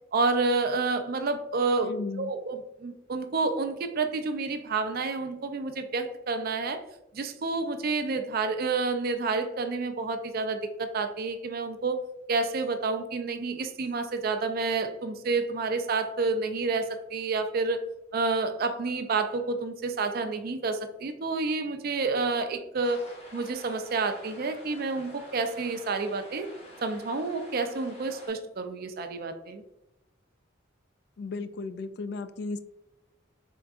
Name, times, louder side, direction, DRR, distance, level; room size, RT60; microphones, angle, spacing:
voice 1, 0.1-1.9 2.2-6.8 7.1-17.8 18.1-23.0 23.3-26.5 26.8-29.6, right 3 dB, 50° right, 8 dB, 0.4 m, -29 dB
voice 2, 1.8-2.3 31.2-32.6, left 3 dB, 55° left, 12 dB, 0.3 m, -35 dB
sound 1, 22.8-28.3, left 1 dB, 30° left, 0.9 m, -49 dB
3.7 x 3.5 x 2.4 m, 0.88 s
head